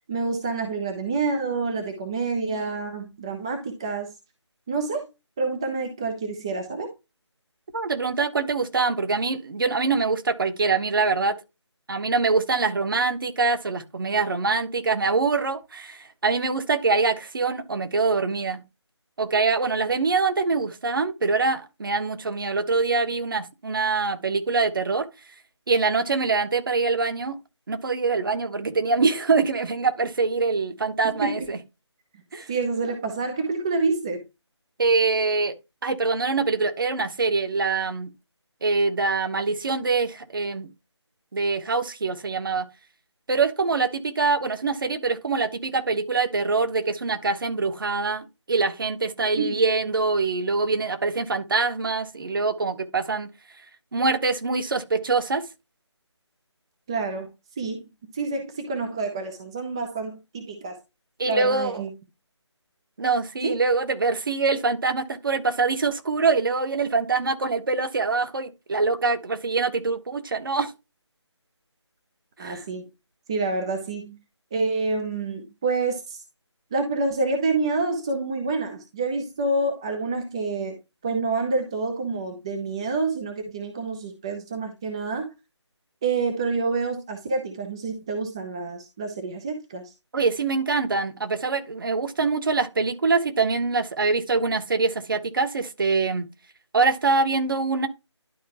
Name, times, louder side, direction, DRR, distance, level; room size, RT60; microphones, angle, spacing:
voice 1, 0.1-4.1 4.7-5.1 5.4-6.9 31.0-31.5 32.5-34.2 49.4-49.6 56.9-57.3 57.6-57.8 58.1-60.8 61.2-61.9 63.4-63.6 72.4-72.9 73.3-74.2 74.5-76.2 76.7-80.7 81.0-85.3 86.0-89.9, right 3 dB, 10° right, 0.5 m, -27 dB
voice 2, 7.7-11.4 11.9-18.6 19.2-25.1 25.7-27.4 27.7-31.6 32.3-32.5 34.8-35.5 35.8-38.1 38.6-40.7 41.3-42.6 43.3-53.3 53.9-55.4 61.2-61.8 63.0-70.7 72.4-72.6 90.1-96.3 96.7-97.9, right 4 dB, 45° right, 1.2 m, -24 dB
11.5 x 4.6 x 2.9 m
figure-of-eight pair, 160°, 15 cm